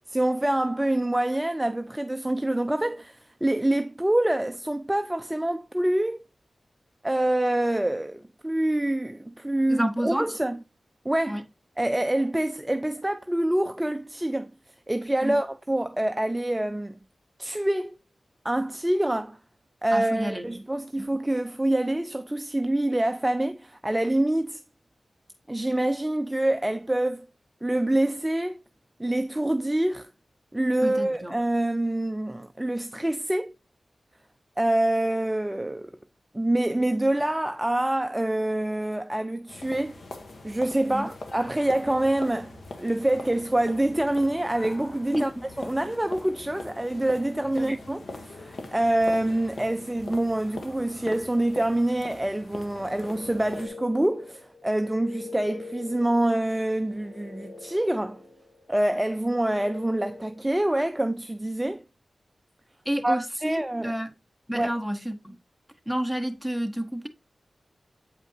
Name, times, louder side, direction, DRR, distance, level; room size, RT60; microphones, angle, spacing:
voice 1, 0.1-6.2 7.0-10.6 11.0-11.4 11.8-14.5 14.9-17.0 17.4-17.9 18.4-19.4 19.8-24.6 25.5-27.3 27.6-28.6 29.0-30.1 30.5-33.5 34.6-35.9 36.3-40.0 40.4-45.3 45.6-58.2 58.7-61.8 63.0-64.0 64.5-64.7, right 1 dB, 10° right, 0.4 m, -26 dB
voice 2, 9.7-10.3 11.3-11.4 15.2-15.4 19.9-20.5 21.0-21.1 30.8-31.4 40.9-41.1 45.1-45.4 47.5-47.8 62.9-64.1 64.5-65.4 65.9-67.1, equal, 5° left, 0.9 m, -30 dB
sound 1, 39.5-53.7, left 2 dB, 70° left, 1.1 m, -42 dB
sound 2, 52.7-60.5, left 3 dB, 50° left, 1.5 m, -44 dB
8.2 x 5.0 x 2.7 m
wide cardioid pair, 90°, 0 cm